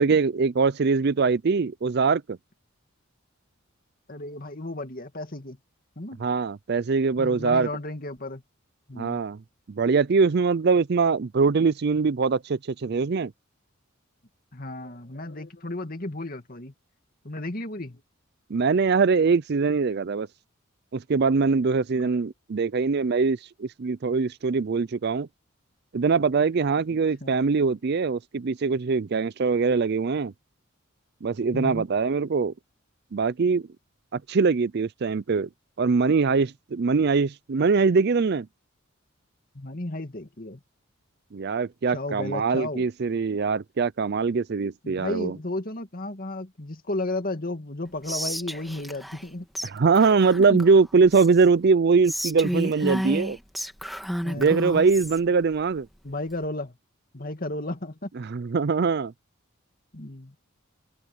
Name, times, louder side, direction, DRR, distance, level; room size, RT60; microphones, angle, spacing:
voice 1, 0.0-2.4 6.2-7.7 9.0-9.4 9.7-13.3 18.5-20.3 20.9-25.3 25.9-30.3 31.2-32.5 33.1-33.6 34.1-35.5 35.8-38.5 41.3-45.3 49.6-53.4 54.4-55.9 58.3-59.1, right 4 dB, 50° right, 0.4 m, -22 dB
voice 2, 4.1-5.6 6.0-6.2 7.1-8.4 8.9-9.2 14.5-16.7 17.2-18.0 22.0-22.2 27.2-27.3 31.5-31.8 39.5-40.6 41.9-42.9 44.8-49.5 50.5-50.6 54.2-54.6 56.0-56.8 57.1-58.1 59.9-60.4, left 2 dB, 45° left, 2.4 m, -33 dB
Whispering, 48.0-49.3 49.5-49.7 49.9-51.5 52.0-55.2, equal, ahead, 1.5 m, -31 dB
head